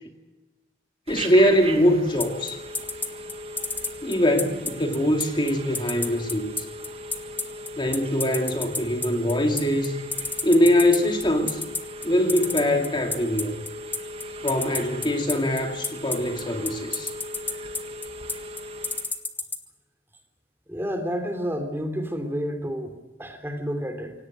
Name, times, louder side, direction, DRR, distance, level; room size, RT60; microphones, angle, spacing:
voice 1, 1.1-2.6 4.0-6.5 7.8-10.0 10.4-11.6 12.0-13.5 14.4-17.1, equal, 25° left, 4 dB, 2.4 m, -22 dB
Telephone, 1.1-19.2, equal, 35° right, 2.3 m, -38 dB
sound 1, 2.2-19.6, left 3 dB, 10° left, 1.6 m, -29 dB
voice 2, 20.7-24.1, equal, 15° right, 6 dB, 3.3 m, -30 dB
25.5 x 18.0 x 7.8 m, 1.1 s
head